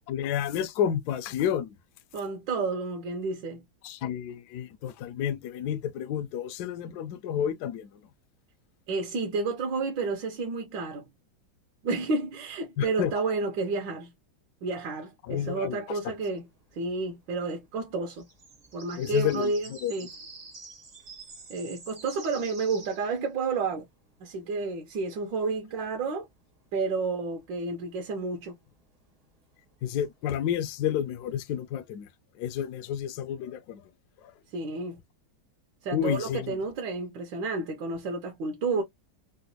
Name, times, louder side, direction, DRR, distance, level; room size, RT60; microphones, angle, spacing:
voice 1, 0.1-1.7 3.8-7.9 12.8-13.1 15.3-15.8 19.0-19.5 19.8-19.9 29.8-32.1 32.4-33.8 35.9-36.5, left 9 dB, 75° left, 0.9 m, -30 dB
voice 2, 2.1-3.6 8.9-11.1 11.8-14.1 14.6-16.5 16.7-18.2 18.7-20.1 21.5-23.8 24.2-26.3 26.7-28.5 34.5-35.0 35.8-38.8, right 4 dB, 70° right, 1.4 m, -31 dB
sound 1, 16.1-31.6, right 3 dB, 40° right, 0.5 m, -50 dB
3.9 x 2.2 x 2.7 m
omnidirectional pair, 2.2 m